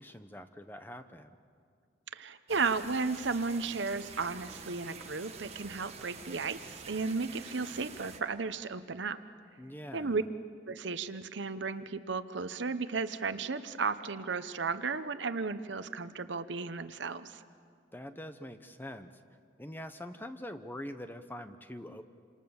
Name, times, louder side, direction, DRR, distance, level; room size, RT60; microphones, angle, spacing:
voice 1, 0.0-1.4 9.6-10.3 17.9-19.2 19.6-22.0, left 1 dB, 10° left, 9 dB, 0.9 m, -44 dB
voice 2, 2.1-9.2 9.9-10.2 10.7-17.4, right 4 dB, 70° right, 11 dB, 0.9 m, -34 dB
sound 1, 2.5-8.2, right 5 dB, 35° right, 1.8 m, -48 dB
28.0 x 27.0 x 7.2 m, 2.2 s
head